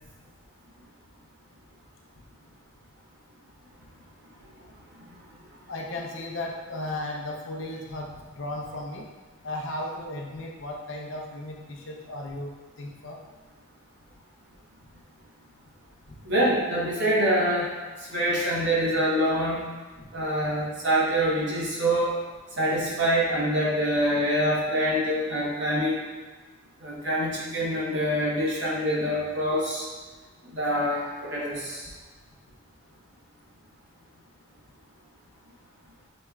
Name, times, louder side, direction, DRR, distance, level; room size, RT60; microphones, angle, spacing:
voice 1, 5.7-9.1 9.4-13.2 16.1-16.2 20.0-20.1, left 1 dB, 60° left, -1 dB, 0.6 m, -35 dB
voice 2, 16.2-17.7 18.1-19.6 20.1-22.2 22.6-26.0 26.8-29.9 30.5-31.8, equal, 55° right, -5 dB, 1.1 m, -25 dB
6.2 x 3.1 x 2.3 m, 1.3 s
head